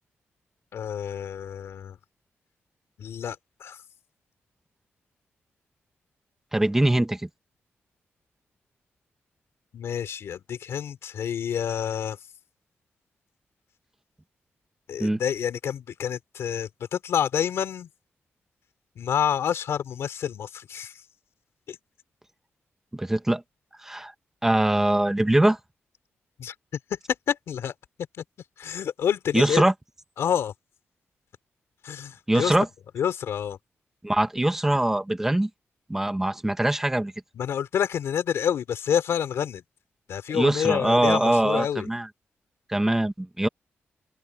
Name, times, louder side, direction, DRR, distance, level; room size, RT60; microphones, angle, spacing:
voice 1, 0.7-2.0 3.0-3.8 9.7-12.2 14.9-17.9 18.9-21.0 21.7-21.8 26.4-26.5 26.9-27.0 27.3-27.7 28.2-28.3 28.6-29.6 30.2-30.5 31.8-32.5 32.9-33.6 37.3-39.6 40.1-41.9, left 8 dB, 90° left, 3.4 m, -28 dB
voice 2, 6.5-7.3 15.0-15.2 22.9-23.4 23.8-24.1 24.4-25.6 29.3-29.7 32.3-32.7 34.0-35.5 35.9-37.1 40.3-42.1 42.7-43.5, right 1 dB, 10° right, 1.1 m, -22 dB
open air
wide cardioid pair, 170°, 4 cm